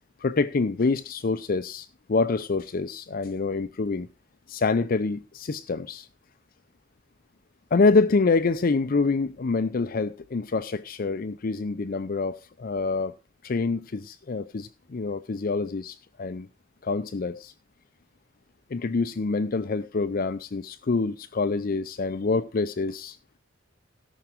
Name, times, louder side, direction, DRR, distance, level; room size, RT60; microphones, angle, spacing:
voice 1, 0.2-4.1 4.5-6.1 7.7-13.1 13.4-16.5 16.8-17.5 18.7-23.2, left 4 dB, 45° left, 0.5 m, -26 dB
17.0 x 6.0 x 4.4 m
head